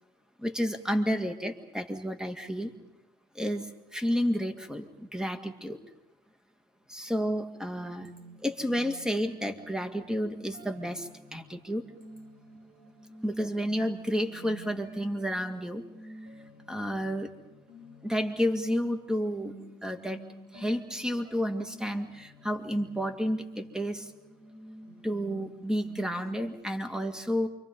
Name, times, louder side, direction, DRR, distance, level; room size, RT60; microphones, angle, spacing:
voice 1, 0.4-2.7 3.4-5.8 6.9-8.1 8.4-11.9 13.2-15.8 16.7-17.3 18.0-19.5 19.8-20.2 20.5-24.1 25.0-27.5, equal, 5° right, 6 dB, 2.1 m, -31 dB
sound 1, 7.7-26.6, right 1 dB, 80° right, 6.7 m, -50 dB
28.5 x 25.0 x 5.3 m, 0.97 s
cardioid pair, 110°, 17 cm